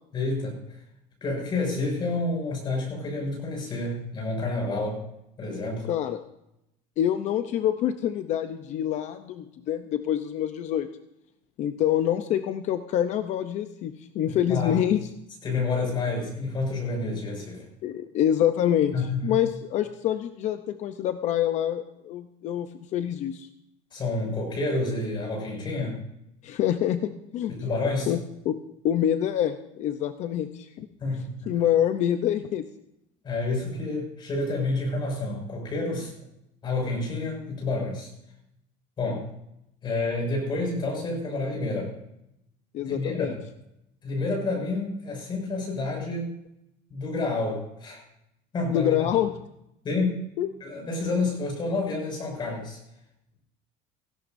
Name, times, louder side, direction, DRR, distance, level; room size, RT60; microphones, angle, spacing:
voice 1, 0.1-0.5 1.2-5.0 5.4-5.9 14.3-14.8 15.4-17.6 18.9-19.4 23.9-26.0 27.5-28.1 31.0-31.5 33.2-36.2 36.6-38.1 39.0-39.3 39.8-41.9 42.8-43.4 44.0-46.4 46.9-48.0 48.5-49.1 49.8-50.2 50.6-52.8, left 2 dB, 25° left, 0 dB, 6.1 m, -29 dB
voice 2, 5.9-6.2 7.0-10.9 11.6-15.1 17.8-23.5 26.4-27.5 28.1-28.6 28.8-30.9 31.5-32.7 42.7-43.3 48.7-49.3 50.4-50.5, left 10 dB, 45° left, 9 dB, 0.7 m, -26 dB
17.5 x 16.0 x 2.7 m, 0.81 s
cardioid pair, 175°, 17 cm